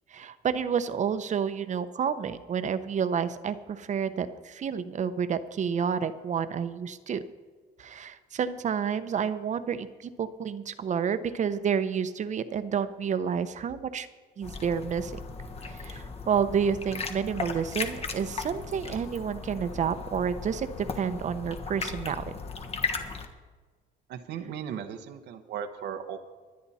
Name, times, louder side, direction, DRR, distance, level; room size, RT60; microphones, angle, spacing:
voice 1, 0.1-7.2 7.8-14.1 14.4-15.2 15.6-22.3, right 7 dB, 45° right, 12 dB, 0.8 m, -30 dB
sound 1, 14.4-23.3, left 4 dB, 35° left, 1.3 m, -37 dB
voice 2, 24.1-26.2, right 8 dB, 85° right, 6 dB, 1.1 m, -37 dB
23.5 x 8.6 x 4.2 m, 1.4 s
cardioid pair, 110°, 17 cm